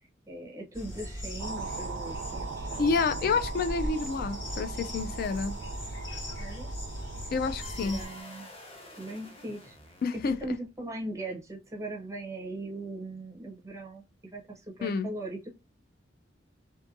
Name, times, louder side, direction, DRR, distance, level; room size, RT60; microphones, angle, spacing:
voice 1, 0.3-3.4 6.4-6.7 7.8-8.5 9.0-9.8 10.2-15.5, right 2 dB, 15° right, 0.6 m, -40 dB
sound 1, 0.7-8.1, equal, 80° left, 1.3 m, -38 dB
sound 2, 1.4-8.2, right 5 dB, 85° right, 0.3 m, -41 dB
voice 2, 2.8-5.6 7.3-8.0 10.0-10.4 14.8-15.1, left 4 dB, 50° left, 0.3 m, -29 dB
sound 3, 7.6-10.8, left 2 dB, 30° left, 0.7 m, -49 dB
2.5 x 2.5 x 2.6 m
head